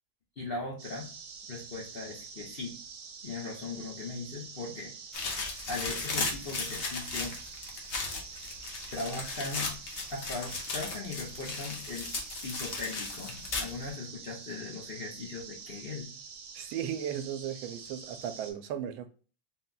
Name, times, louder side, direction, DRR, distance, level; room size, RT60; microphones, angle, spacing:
voice 1, 0.4-1.1 1.5-2.8 3.2-4.9 5.7-7.4 8.9-9.7 10.1-12.1 12.4-16.1, left 3 dB, 65° left, 0.5 m, -39 dB
sound 1, 0.8-18.5, right 5 dB, 60° right, 1.4 m, -46 dB
sound 2, 5.1-13.9, left 3 dB, 50° left, 0.9 m, -36 dB
voice 2, 16.5-19.1, right 9 dB, 85° right, 1.4 m, -36 dB
4.2 x 2.2 x 3.8 m
omnidirectional pair, 2.1 m